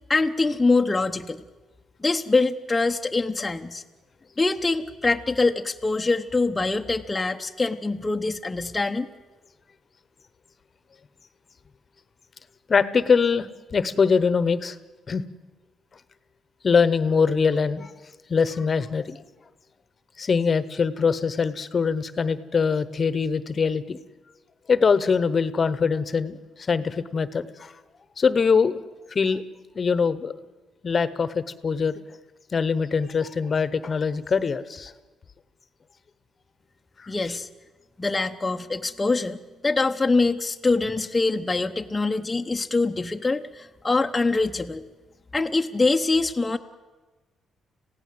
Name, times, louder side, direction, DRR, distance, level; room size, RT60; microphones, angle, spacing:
voice 1, 0.1-1.4 2.0-3.8 4.4-9.1 37.1-37.5 38.0-39.4 39.6-44.8 45.3-46.6, left 3 dB, 20° left, 3 dB, 0.9 m, -24 dB
voice 2, 12.7-13.5 13.7-14.8 15.1-15.2 16.6-17.9 18.3-19.2 20.2-24.0 24.7-27.7 28.2-28.8 29.1-29.4 29.7-30.3 30.8-32.0 32.5-34.9 37.0-37.4, left 5 dB, 40° left, 15 dB, 1.1 m, -23 dB
26.5 x 16.5 x 7.8 m, 1.2 s
cardioid pair, 90°, 0 cm